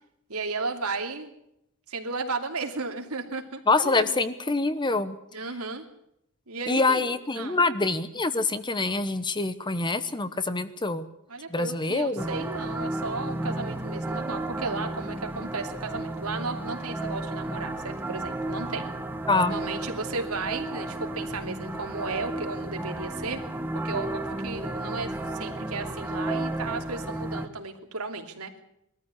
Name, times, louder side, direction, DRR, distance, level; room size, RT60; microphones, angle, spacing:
voice 1, 0.3-1.3 1.9-4.1 5.3-5.8 6.5-7.1 7.4-7.6 11.3-18.9 19.3-23.4 23.8-28.5, right 3 dB, 85° right, 4 dB, 2.9 m, -34 dB
voice 2, 3.7-5.2 6.7-11.0 11.5-12.3 19.3-19.5, left 3 dB, 20° left, 13 dB, 1.0 m, -25 dB
sound 1, 12.2-27.5, right 2 dB, 10° right, 1.5 m, -33 dB
21.5 x 14.0 x 9.7 m, 0.79 s
head